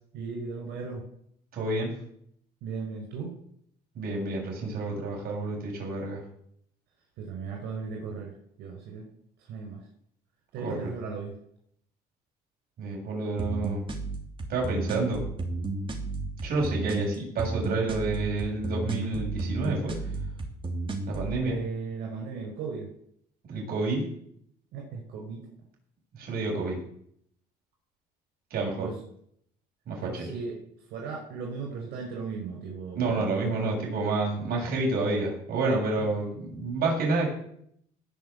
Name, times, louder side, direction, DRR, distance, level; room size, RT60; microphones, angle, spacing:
voice 1, 0.1-1.0 2.6-3.3 7.2-8.3 8.6-9.1 9.4-9.8 10.5-11.3 21.4-22.9 24.7-25.4 28.8-28.9 30.0-30.5 30.9-33.6 36.0-36.1, right 5 dB, 85° right, -1 dB, 5.5 m, -36 dB
voice 2, 1.5-1.9 4.0-6.2 10.6-10.9 12.8-13.8 14.5-15.2 16.4-20.0 21.1-21.6 23.5-24.1 26.2-26.8 28.5-28.9 29.9-30.3 32.9-37.3, right 3 dB, 60° right, -1 dB, 7.5 m, -29 dB
sound 1, 13.4-21.4, right 2 dB, 30° right, 3.1 m, -33 dB
18.5 x 6.4 x 8.3 m, 0.68 s
cardioid pair, 110°, 17 cm